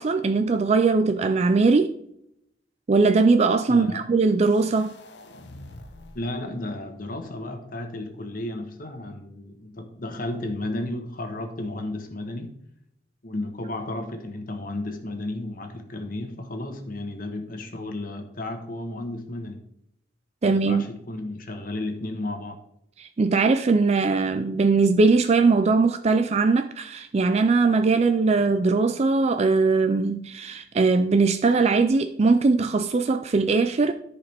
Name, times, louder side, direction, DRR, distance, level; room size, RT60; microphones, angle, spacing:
voice 1, 0.0-2.0 2.9-4.9 20.4-20.9 23.0-33.9, right 4 dB, 35° right, 0.4 m, -20 dB
voice 2, 3.7-4.0 6.1-12.6 13.2-19.6 20.4-22.6, left 1 dB, 50° left, 1.3 m, -33 dB
sound 1, 4.5-6.4, left 1 dB, 70° left, 0.9 m, -46 dB
13.5 x 4.8 x 3.5 m
head